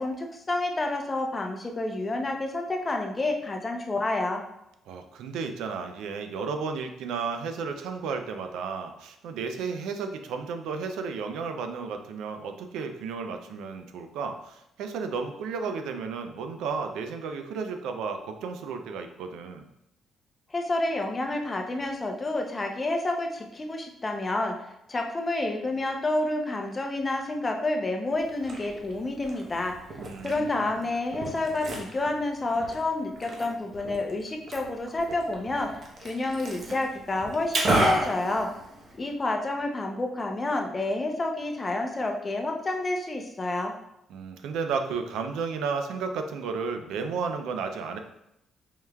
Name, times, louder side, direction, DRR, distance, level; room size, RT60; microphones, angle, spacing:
voice 1, 0.0-4.4 20.5-24.5 24.9-29.8 30.2-35.7 36.0-38.5 38.9-43.7, left 2 dB, 30° left, 3 dB, 0.6 m, -29 dB
voice 2, 4.9-19.7 30.0-30.9 44.1-48.0, right 5 dB, 85° right, 6 dB, 0.4 m, -33 dB
Liquid, 28.2-39.2, right 1 dB, 50° right, 0.9 m, -33 dB
4.6 x 3.2 x 2.3 m, 0.83 s
cardioid pair, 90°, 0 cm